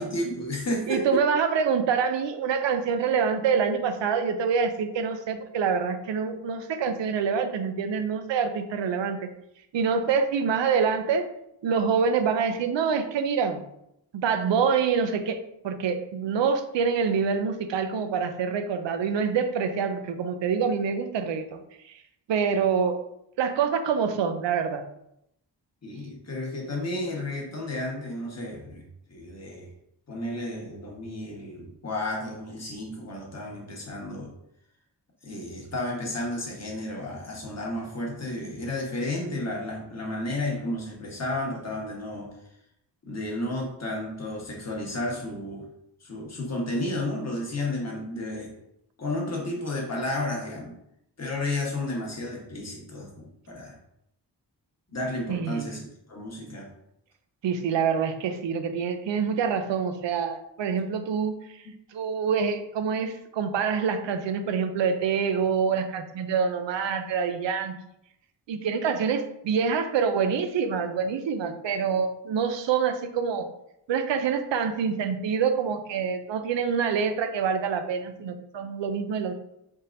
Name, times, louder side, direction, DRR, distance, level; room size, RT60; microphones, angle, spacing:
voice 1, 0.0-1.2 25.8-28.8 29.1-29.7 30.1-34.3 35.2-42.3 43.0-45.6 46.0-48.5 49.0-50.7 51.2-53.7 54.9-56.7, left 1 dB, 35° left, -2 dB, 1.2 m, -32 dB
voice 2, 0.9-9.3 9.7-11.3 11.6-13.6 14.1-21.9 22.3-23.0 23.4-24.9 55.3-55.7 57.4-61.4 61.9-67.7 68.5-73.5 73.9-79.3, right 6 dB, 80° right, 8 dB, 0.5 m, -26 dB
4.1 x 3.7 x 2.5 m, 0.78 s
wide cardioid pair, 85°, 42 cm